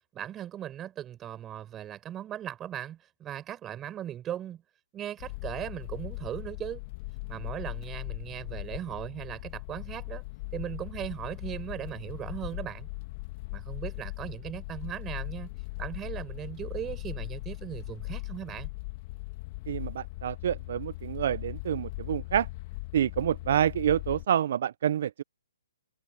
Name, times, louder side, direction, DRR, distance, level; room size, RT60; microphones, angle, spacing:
voice 1, 0.1-4.6 4.9-6.8 7.3-10.2 10.5-12.9 13.5-15.5 15.8-18.7, right 11 dB, 15° right, 4.8 m, -38 dB
sound 1, 5.2-24.3, left 22 dB, 35° left, 1.5 m, -39 dB
voice 2, 19.7-22.5 22.9-25.2, right 10 dB, 55° right, 0.5 m, -28 dB
hypercardioid pair, 145°, 0 cm